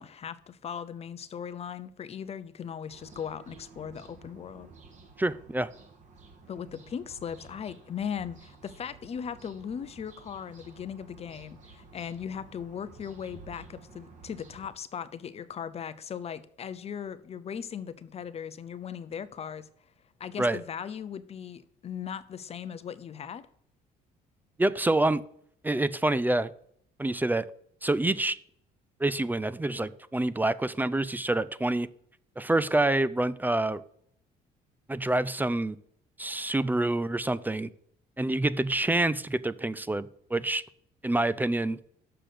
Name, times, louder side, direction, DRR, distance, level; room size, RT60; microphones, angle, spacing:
voice 1, 0.0-4.7 6.5-19.7 20.2-23.5, left 8 dB, 40° left, 0.7 m, -38 dB
sound 1, 2.9-14.7, right 4 dB, 45° right, 1.9 m, -52 dB
voice 2, 5.2-5.7 20.4-20.6 24.6-25.2 25.6-26.5 27.0-27.5 27.8-28.4 29.0-31.9 32.4-33.8 34.9-35.8 36.2-37.7 38.2-40.6 41.0-41.8, right 2 dB, 10° right, 0.4 m, -27 dB
6.7 x 5.9 x 6.7 m
cardioid pair, 110°, 17 cm